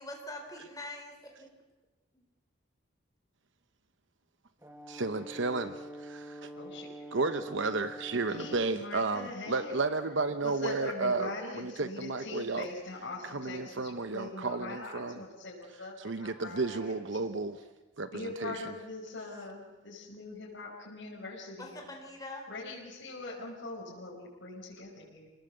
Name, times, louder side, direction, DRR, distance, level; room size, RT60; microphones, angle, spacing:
voice 1, 0.0-1.5 21.6-22.5, left 1 dB, 15° left, 2 dB, 3.8 m, -43 dB
Brass instrument, 4.6-8.8, right 1 dB, 15° right, 1.7 m, -46 dB
voice 2, 4.9-6.5 7.1-12.7 13.2-15.2 16.0-17.6 18.0-18.7, right 3 dB, 65° right, 10 dB, 0.9 m, -33 dB
voice 3, 6.6-6.9 8.3-9.8 10.4-16.9 17.2-17.3 18.1-21.9 22.5-25.3, left 2 dB, 60° left, -7 dB, 5.9 m, -42 dB
27.5 x 19.5 x 8.1 m, 1.2 s
head